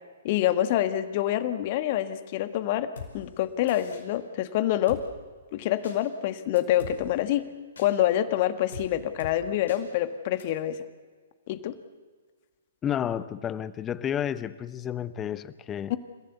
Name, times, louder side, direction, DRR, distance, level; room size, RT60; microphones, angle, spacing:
voice 1, 0.2-5.0 5.5-7.5 7.8-10.8 11.5-11.8 15.9-16.0, left 12 dB, 45° left, 11 dB, 1.6 m, -26 dB
Drum kit, 3.0-3.1 3.7-4.0 4.9-5.0 5.8-6.0 6.6-6.9 7.8-7.9 8.7-8.9 9.2-9.3 9.7-9.8 10.4-10.5, left 6 dB, 70° left, 5.3 m, -41 dB
voice 2, 12.8-15.9, left 9 dB, 20° left, 16 dB, 0.9 m, -31 dB
29.5 x 15.5 x 8.2 m, 1.5 s
figure-of-eight pair, 120°, 0 cm